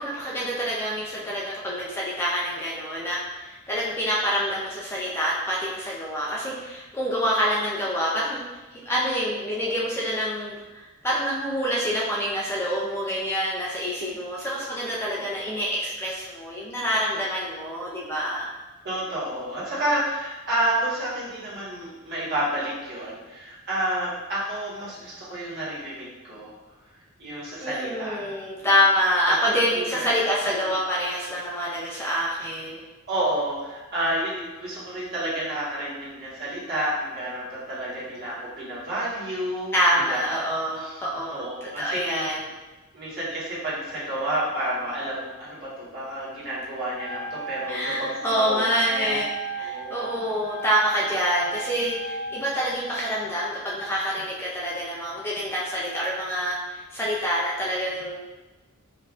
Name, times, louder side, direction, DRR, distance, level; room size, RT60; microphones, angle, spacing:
voice 1, 0.0-8.4 8.9-18.5 27.6-32.8 39.7-42.5 47.7-49.3 49.6-58.1, equal, 10° left, -5 dB, 0.5 m, -26 dB
voice 2, 18.8-26.5 27.2-28.2 28.6-28.7 29.3-29.4 29.7-30.1 33.1-40.4 40.8-41.0 41.3-42.3 42.9-49.2 49.6-50.1, right 1 dB, 50° right, -9 dB, 1.5 m, -30 dB
Wind instrument woodwind instrument, 46.9-53.1, right 4 dB, 45° left, 0.7 m, -36 dB
5.2 x 2.6 x 2.4 m, 1.2 s
head